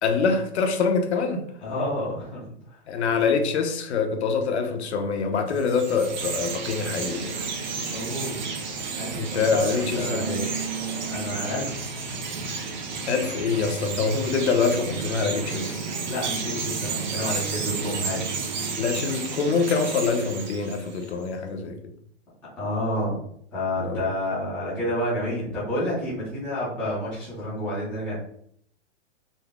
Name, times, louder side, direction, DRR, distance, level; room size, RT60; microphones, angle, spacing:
voice 1, 0.0-1.4 2.9-7.4 9.1-10.5 13.1-15.8 18.8-21.8 23.8-24.0, left 5 dB, 65° left, 0.7 m, -25 dB
voice 2, 1.6-2.4 7.9-8.4 8.9-10.3 11.1-11.8 16.1-18.4 22.6-23.2 23.5-28.2, left 1 dB, 5° left, 0.5 m, -29 dB
Chirp tweet, 5.5-21.1, right 4 dB, 40° right, 0.6 m, -31 dB
4.0 x 2.1 x 3.5 m
hypercardioid pair, 170°, 36 cm